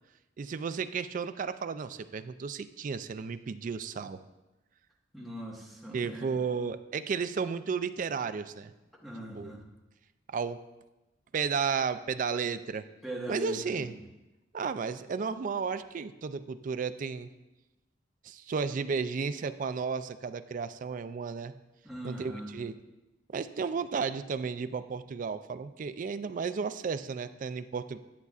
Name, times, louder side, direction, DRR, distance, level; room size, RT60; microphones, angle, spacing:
voice 1, 0.4-4.2 5.9-8.7 9.4-9.5 10.3-10.6 11.3-12.8 13.3-13.9 14.5-17.3 18.2-21.5 22.0-22.7 23.3-28.0, right 5 dB, 45° right, 12 dB, 0.3 m, -33 dB
voice 2, 5.1-6.4 9.0-9.6 13.0-13.9 21.8-22.5, equal, ahead, -4 dB, 1.4 m, -40 dB
10.5 x 8.1 x 2.4 m, 1.0 s
head